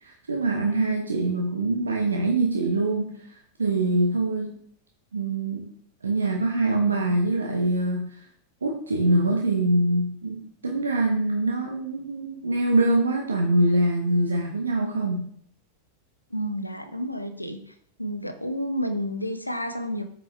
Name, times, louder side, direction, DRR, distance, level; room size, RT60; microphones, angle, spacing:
voice 1, 0.0-4.6 5.1-5.7 6.0-8.2 8.6-15.3, right 2 dB, 75° right, 1 dB, 1.1 m, -24 dB
voice 2, 16.3-17.6 18.0-20.0, equal, 85° left, 7 dB, 0.9 m, -30 dB
8.8 x 6.6 x 3.4 m, 0.64 s
figure-of-eight pair, 90°, 0 cm